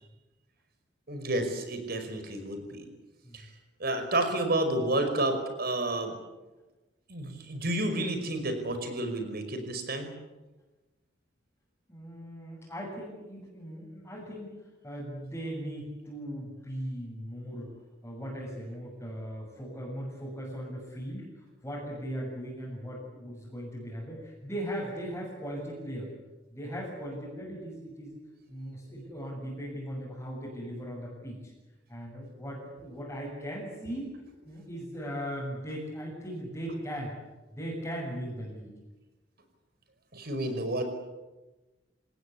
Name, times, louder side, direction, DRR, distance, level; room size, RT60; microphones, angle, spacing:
voice 1, 1.1-2.9 3.3-3.5 3.8-6.1 7.1-10.1 40.1-40.8, right 1 dB, 55° right, 7 dB, 5.3 m, -30 dB
voice 2, 11.9-17.7 18.0-26.1 26.5-28.2 28.5-31.5 31.9-34.1 34.4-37.1 37.5-38.7, equal, 15° left, -6 dB, 7.2 m, -38 dB
27.0 x 19.5 x 8.6 m, 1.1 s
head